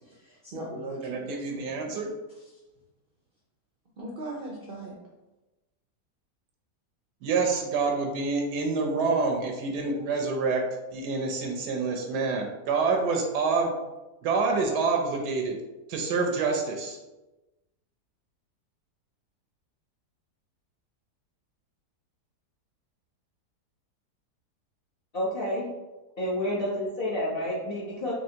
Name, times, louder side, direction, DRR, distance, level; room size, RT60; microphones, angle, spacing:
voice 1, 0.0-1.9 4.0-4.9, right 1 dB, 60° right, -3 dB, 0.5 m, -39 dB
voice 2, 1.0-2.1 7.2-10.6 10.9-13.7 14.2-15.6 15.9-17.0, right 4 dB, 80° right, 2 dB, 1.2 m, -27 dB
voice 3, 25.1-25.7 26.2-28.1, left 1 dB, 45° left, -6 dB, 0.9 m, -29 dB
4.3 x 3.0 x 2.7 m, 1.1 s
omnidirectional pair, 1.7 m